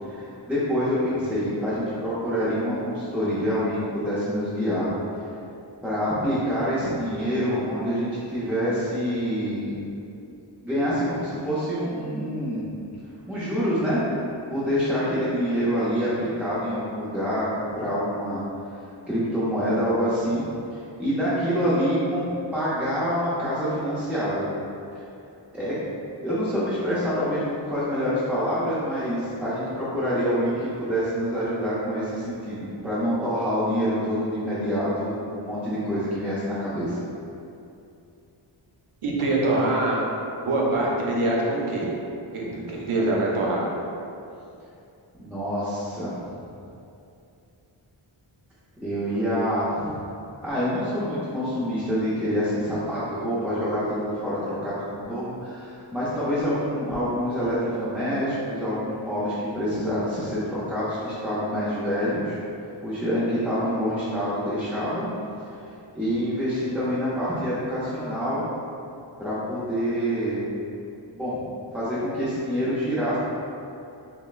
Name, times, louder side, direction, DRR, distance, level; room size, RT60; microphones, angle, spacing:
voice 1, 0.0-4.9 5.8-9.8 10.6-12.6 13.3-14.0 14.5-18.4 19.1-20.5 21.0-24.4 25.5-25.7 26.2-37.0 45.2-46.1 48.8-50.0 50.4-62.4 62.8-65.1 65.4-65.7 65.9-68.5 69.2-70.4 71.1-71.4 71.7-73.2, equal, 5° right, -11 dB, 0.6 m, -26 dB
voice 2, 39.0-40.0 40.5-41.9 42.3-43.7, right 2 dB, 85° right, -4 dB, 0.7 m, -24 dB
5.4 x 2.1 x 2.4 m, 2.7 s
wide cardioid pair, 95°, 49 cm